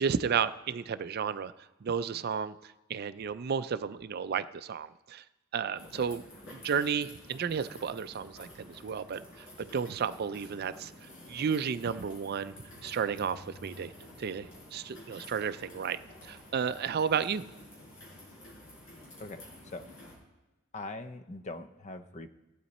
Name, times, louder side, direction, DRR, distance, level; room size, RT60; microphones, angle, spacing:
voice 1, 0.0-1.5 1.8-5.2 5.5-6.2 6.5-10.9 11.3-12.5 12.8-13.9 14.2-17.4, right 6 dB, 45° right, 13 dB, 0.4 m, -32 dB
sound 1, 5.8-20.2, left 1 dB, 85° left, 4.7 m, -51 dB
voice 2, 20.7-22.3, left 2 dB, 35° left, 10 dB, 0.6 m, -41 dB
15.5 x 8.7 x 4.2 m, 1.1 s
head